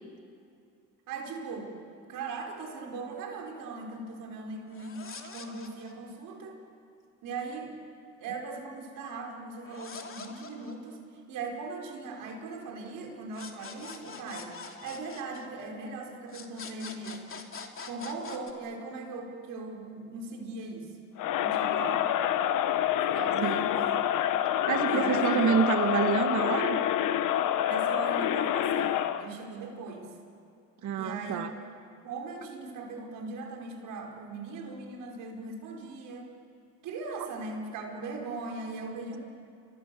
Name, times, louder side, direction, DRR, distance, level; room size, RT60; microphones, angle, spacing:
voice 1, 1.1-1.7 2.1-6.6 7.2-7.7 8.2-14.5 14.8-17.3 17.9-20.9 21.4-22.1 23.1-24.1 24.8-25.4 27.6-30.1 31.0-31.5 32.0-36.3 36.8-39.2, right 3 dB, 80° right, 1 dB, 4.9 m, -39 dB
sound 1, 4.7-6.1 9.6-11.2 13.3-15.9 16.3-18.5, left 5 dB, 40° left, 2.9 m, -44 dB
Crowd, 21.2-29.3, left 11 dB, 75° left, 1.2 m, -27 dB
voice 2, 24.7-26.8 30.8-31.5, right 7 dB, 65° right, 7 dB, 1.9 m, -27 dB
29.5 x 25.0 x 7.0 m, 2.5 s
cardioid pair, 85°, 32 cm